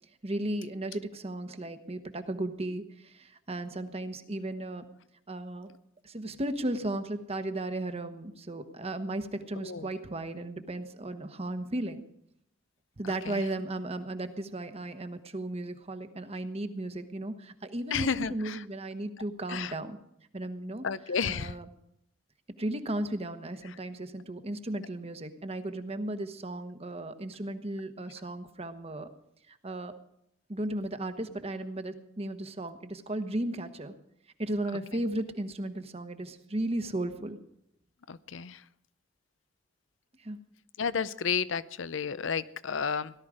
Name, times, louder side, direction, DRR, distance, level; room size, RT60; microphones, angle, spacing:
voice 1, 0.2-4.8 5.3-5.7 6.0-12.0 13.0-20.0 20.3-21.7 22.6-29.1 29.5-29.9 30.5-33.9 34.4-37.4 40.2-40.4, right 1 dB, 30° right, 9 dB, 1.1 m, -35 dB
voice 2, 17.9-18.6 19.5-19.7 20.8-21.5 38.1-38.6 40.8-43.1, left 6 dB, 70° left, 16 dB, 0.6 m, -31 dB
17.5 x 12.5 x 5.0 m, 0.74 s
head